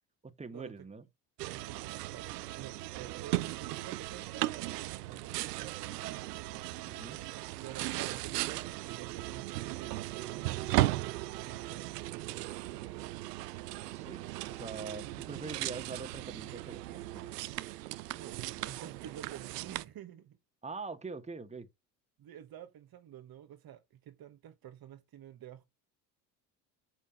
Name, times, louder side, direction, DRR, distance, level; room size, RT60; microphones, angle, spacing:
voice 1, 0.2-1.0 6.8-7.2 13.9-17.3 20.6-21.7, right 4 dB, 15° right, 1.5 m, -44 dB
sound 1, 1.4-19.8, right 17 dB, 90° right, 0.6 m, -37 dB
voice 2, 1.5-6.7 7.6-12.9 15.0-15.2 18.1-20.4 22.2-25.6, right 10 dB, 50° right, 1.3 m, -50 dB
7.1 x 5.0 x 5.7 m
hypercardioid pair, 65°, 47 cm